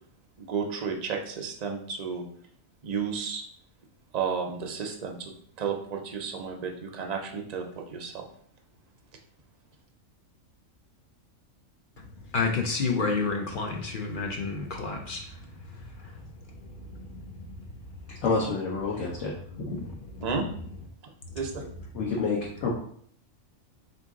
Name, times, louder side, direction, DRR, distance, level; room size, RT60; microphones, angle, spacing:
voice 1, 0.4-2.3 2.8-3.4 4.1-5.3 5.6-8.3 20.2-20.5 21.3-21.6, right 6 dB, 50° right, 2 dB, 0.5 m, -32 dB
voice 2, 12.3-16.2 16.7-17.5 19.5-20.3 21.3-21.4, left 4 dB, 55° left, 2 dB, 0.6 m, -31 dB
voice 3, 18.2-19.3 19.7-19.9 21.9-22.7, left 4 dB, 70° left, -3 dB, 1.1 m, -28 dB
3.9 x 2.8 x 3.6 m, 0.62 s
omnidirectional pair, 1.4 m